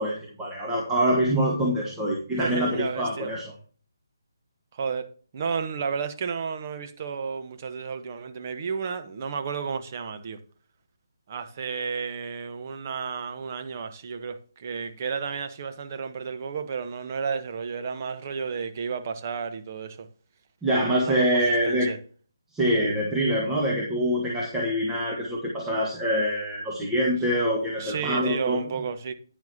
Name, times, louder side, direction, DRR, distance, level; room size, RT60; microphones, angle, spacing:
voice 1, 0.0-3.5 20.6-21.9 22.5-28.6, equal, 10° right, 1.4 m, -25 dB
voice 2, 2.4-3.3 4.7-10.4 11.3-20.1 20.7-22.0 27.8-29.1, right 6 dB, 35° right, 1.1 m, -32 dB
10.5 x 9.4 x 2.8 m
figure-of-eight pair, 150°, 2 cm